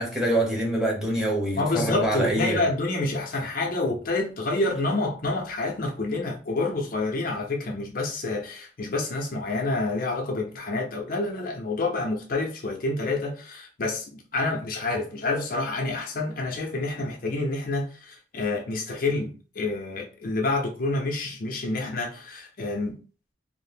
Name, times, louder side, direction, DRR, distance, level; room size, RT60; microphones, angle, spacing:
voice 1, 0.0-2.6, right 1 dB, 5° right, 0.8 m, -25 dB
voice 2, 1.6-23.0, left 2 dB, 50° left, 0.5 m, -28 dB
2.7 x 2.0 x 3.3 m
head